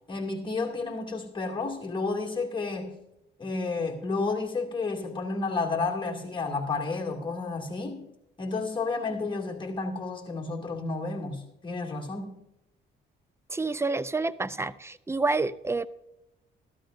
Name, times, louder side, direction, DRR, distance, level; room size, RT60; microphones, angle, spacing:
voice 1, 0.1-3.0 3.4-8.0 8.4-12.4, left 3 dB, 25° left, 1 dB, 2.4 m, -31 dB
voice 2, 13.5-15.9, right 3 dB, 15° right, 16 dB, 0.5 m, -28 dB
14.0 x 13.0 x 2.6 m, 0.86 s
cardioid pair, 90°, 20 cm